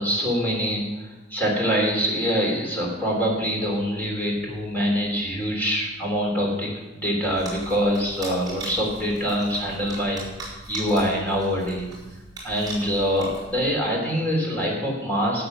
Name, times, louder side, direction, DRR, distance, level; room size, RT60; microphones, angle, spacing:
voice 1, 0.0-10.2 10.7-11.9 12.4-15.4, equal, 10° left, -3 dB, 3.3 m, -24 dB
sound 1, 7.2-13.8, right 2 dB, 20° right, 4.2 m, -40 dB
12.5 x 7.8 x 6.5 m, 1.1 s
head